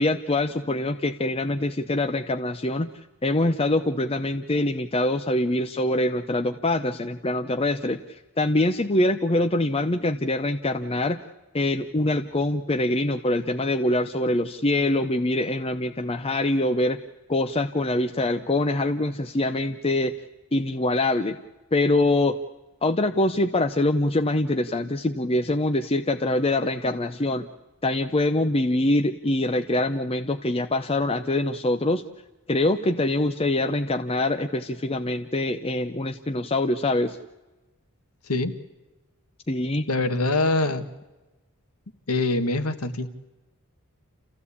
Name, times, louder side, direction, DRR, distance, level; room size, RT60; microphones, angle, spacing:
voice 1, 0.0-2.9 3.2-11.2 11.5-17.0 17.3-20.1 20.5-21.4 21.7-22.4 22.8-27.5 27.8-32.0 32.5-37.2 39.5-39.9, left 2 dB, 25° left, 7 dB, 0.7 m, -24 dB
voice 2, 39.9-40.9 42.1-43.1, left 2 dB, 80° left, 10 dB, 1.7 m, -24 dB
29.0 x 15.0 x 8.5 m, 1.1 s
head